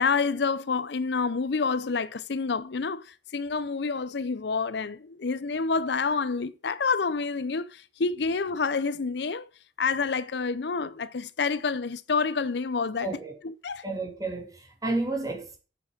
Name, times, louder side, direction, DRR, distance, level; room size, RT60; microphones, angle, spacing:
voice 1, 0.0-9.5 9.8-13.1 13.4-13.8, left 4 dB, 70° left, 0.6 m, -28 dB
voice 2, 13.0-13.3 13.8-15.6, right 2 dB, 20° right, 3.2 m, -31 dB
8.4 x 8.1 x 7.3 m
head